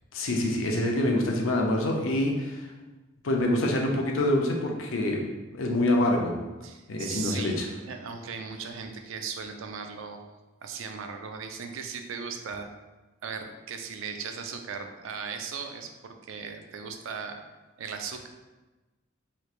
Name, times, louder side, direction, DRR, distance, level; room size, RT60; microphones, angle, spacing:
voice 1, 0.1-2.7 3.2-5.2 5.5-6.4 6.9-7.7, left 1 dB, 85° left, 1 dB, 0.6 m, -26 dB
voice 2, 6.6-10.2 10.6-12.7 13.2-17.4 17.8-18.3, right 6 dB, 80° right, 6 dB, 0.4 m, -37 dB
3.2 x 3.1 x 2.4 m, 1.2 s
head